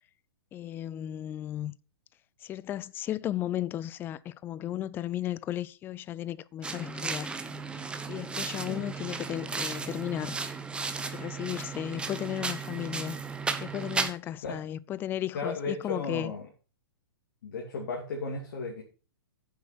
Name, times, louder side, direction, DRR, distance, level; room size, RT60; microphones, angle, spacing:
voice 1, 0.5-1.7 2.4-7.3 8.1-10.4 11.1-13.2 13.6-16.4, left 12 dB, 15° left, 0.4 m, -35 dB
sound 1, 6.6-14.1, right 4 dB, 10° right, 1.0 m, -35 dB
voice 2, 8.4-8.8 14.4-14.6 15.3-16.4 17.4-18.8, left 4 dB, 50° left, 2.7 m, -35 dB
9.5 x 7.5 x 6.0 m
figure-of-eight pair, 110°, 12 cm